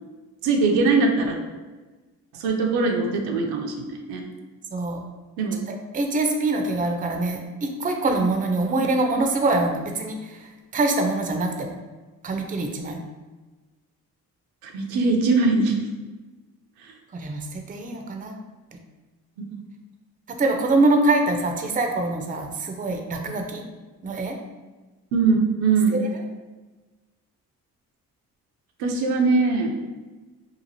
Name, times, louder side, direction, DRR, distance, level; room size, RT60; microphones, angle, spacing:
voice 1, 0.4-1.4 2.4-4.2 5.4-5.6 14.6-15.7 25.1-26.0 28.8-29.7, right 4 dB, 80° right, 2 dB, 0.6 m, -21 dB
voice 2, 4.7-5.0 5.7-10.3 10.7-11.8 12.2-13.0 17.1-18.3 20.4-23.6 24.0-24.4, right 2 dB, 20° right, 3 dB, 0.5 m, -24 dB
3.0 x 2.4 x 2.6 m, 1.3 s
supercardioid pair, 60°, 37 cm